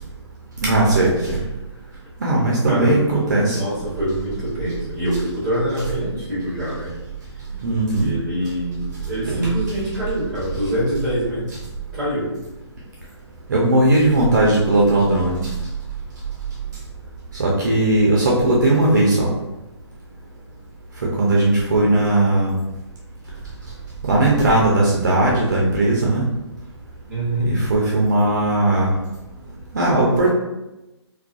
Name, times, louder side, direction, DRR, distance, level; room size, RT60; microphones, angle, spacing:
voice 1, 0.6-1.4 2.2-3.6 7.6-8.1 9.2-9.5 13.5-15.4 17.3-19.3 21.2-22.6 24.1-26.2 27.5-28.9 29.7-30.3, right 2 dB, 40° right, -4 dB, 0.4 m, -18 dB
voice 2, 2.7-6.9 7.9-12.3 27.1-27.5, equal, 5° right, -9 dB, 0.8 m, -25 dB
2.2 x 2.2 x 2.5 m, 0.99 s
hypercardioid pair, 170°, 15 cm